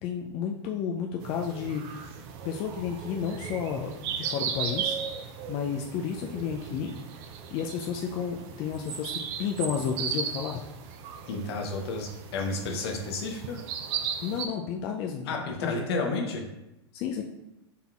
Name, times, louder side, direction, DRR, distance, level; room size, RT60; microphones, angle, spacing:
voice 1, 0.0-5.0 5.5-6.9 7.5-9.1 9.4-10.6 14.2-15.7 16.9-17.2, left 7 dB, 40° left, 1 dB, 0.4 m, -32 dB
sound 1, 1.2-14.5, right 7 dB, 45° right, 0.5 m, -36 dB
voice 2, 11.3-13.6 15.3-16.4, left 3 dB, 65° left, 2 dB, 0.9 m, -31 dB
4.0 x 3.9 x 2.4 m, 0.92 s
hypercardioid pair, 105°, 14 cm